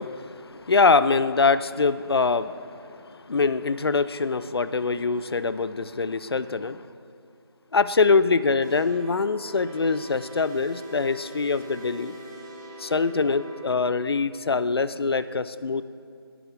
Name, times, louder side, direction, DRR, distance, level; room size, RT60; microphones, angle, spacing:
voice 1, 0.0-2.5 3.3-6.8 7.7-12.1 12.8-15.8, left 4 dB, 70° left, 14 dB, 0.4 m, -23 dB
sound 1, 8.6-13.8, right 1 dB, 35° right, 1.6 m, -43 dB
17.0 x 6.1 x 3.4 m, 2.4 s
figure-of-eight pair, 180°, 13 cm